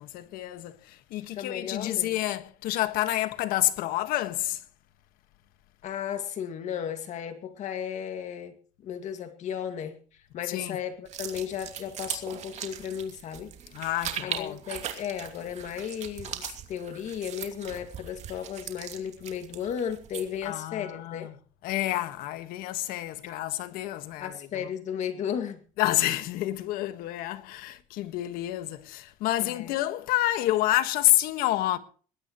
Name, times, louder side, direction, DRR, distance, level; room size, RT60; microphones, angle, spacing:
voice 1, 0.0-4.6 10.5-10.8 13.7-14.6 20.4-21.3 21.6-24.3 25.8-31.8, left 15 dB, 85° left, 1.6 m, -28 dB
voice 2, 1.3-2.1 5.8-8.6 8.8-9.9 10.3-13.5 14.2-21.3 24.2-25.6 29.4-29.8, left 8 dB, 55° left, 2.1 m, -35 dB
sound 1, 11.0-20.4, right 9 dB, 50° right, 2.7 m, -39 dB
21.0 x 17.0 x 3.1 m
cardioid pair, 150°, 15 cm